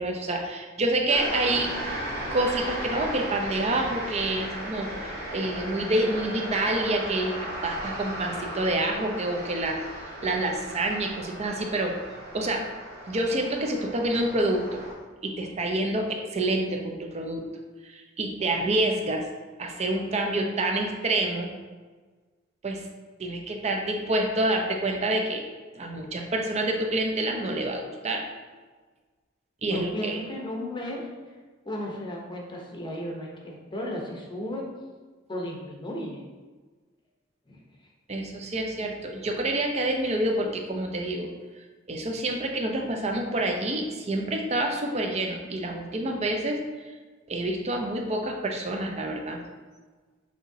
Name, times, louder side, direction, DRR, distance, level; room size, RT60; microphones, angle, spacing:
voice 1, 0.0-1.7 2.3-12.0 12.3-12.7 13.1-14.8 15.2-17.5 17.8-19.3 19.6-21.5 22.6-22.8 23.2-25.4 25.7-28.3 29.6-30.2 38.1-41.3 41.9-46.6 46.9-47.0 47.3-49.4, right 1 dB, 35° right, 2 dB, 0.5 m, -27 dB
sound 1, 1.1-14.9, right 1 dB, 50° right, 1.0 m, -36 dB
voice 2, 29.6-31.1 31.7-34.7 35.3-36.2 37.5-37.6, left 1 dB, 25° left, -1 dB, 0.7 m, -34 dB
6.3 x 3.0 x 2.7 m, 1.4 s
head